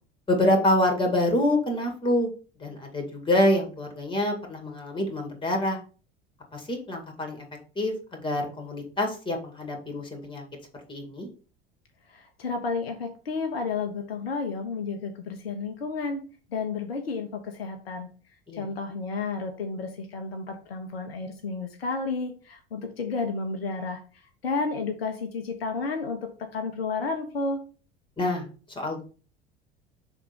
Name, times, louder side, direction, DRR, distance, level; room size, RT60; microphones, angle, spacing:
voice 1, 0.3-2.3 2.6-5.8 6.5-7.5 7.8-10.4 10.9-11.3 18.5-19.0 28.2-28.5 28.8-29.0, left 1 dB, 15° left, 3 dB, 2.0 m, -26 dB
voice 2, 12.1-16.2 16.5-18.1 18.5-24.0 24.4-27.6, left 4 dB, 70° left, 4 dB, 0.9 m, -31 dB
5.8 x 3.6 x 5.6 m, 0.37 s
figure-of-eight pair, 65°, 31 cm